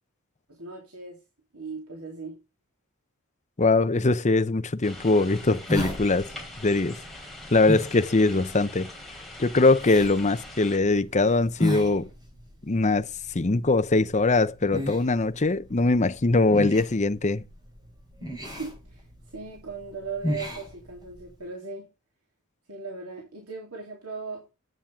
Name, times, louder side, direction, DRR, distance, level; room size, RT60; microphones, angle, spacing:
voice 1, 0.5-1.2 1.5-2.4 18.6-19.0 19.3-21.9 22.7-24.4, right 4 dB, 80° right, 3.2 m, -38 dB
voice 2, 3.6-6.3 6.6-7.0 7.5-8.9 9.4-12.1 12.6-13.1 13.3-17.4, left 3 dB, 30° left, 0.7 m, -22 dB
sound 1, 4.8-10.8, left 1 dB, ahead, 3.2 m, -43 dB
sound 2, 4.8-21.4, left 1 dB, 20° right, 4.5 m, -36 dB
10.0 x 8.8 x 3.7 m
head